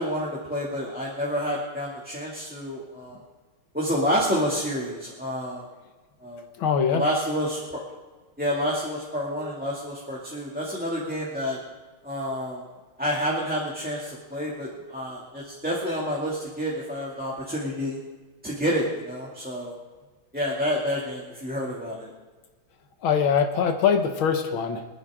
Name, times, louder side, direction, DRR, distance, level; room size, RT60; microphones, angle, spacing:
voice 1, 0.0-3.2 3.7-5.7 6.2-6.4 6.9-7.6 8.4-11.6 12.0-12.6 13.0-18.0 18.4-19.8 20.3-22.1, equal, 5° right, -5 dB, 2.1 m, -29 dB
voice 2, 6.6-7.0 23.0-24.9, left 7 dB, 85° left, 5 dB, 2.0 m, -22 dB
27.0 x 10.5 x 3.7 m, 1.3 s
omnidirectional pair, 2.2 m